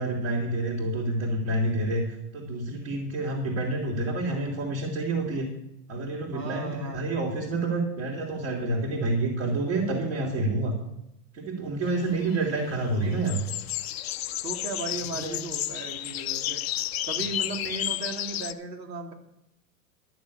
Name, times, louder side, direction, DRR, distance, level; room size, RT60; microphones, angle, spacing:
voice 1, 0.0-2.0 2.3-5.5 5.9-10.7 11.3-13.4 15.1-15.4, right 2 dB, 45° right, -3 dB, 3.2 m, -28 dB
voice 2, 6.3-7.1 14.4-19.1, right 3 dB, 90° right, 3 dB, 3.2 m, -36 dB
sound 1, 11.8-18.5, left 13 dB, 45° left, 0.5 m, -32 dB
12.0 x 7.2 x 8.4 m, 0.83 s
supercardioid pair, 160°, 48 cm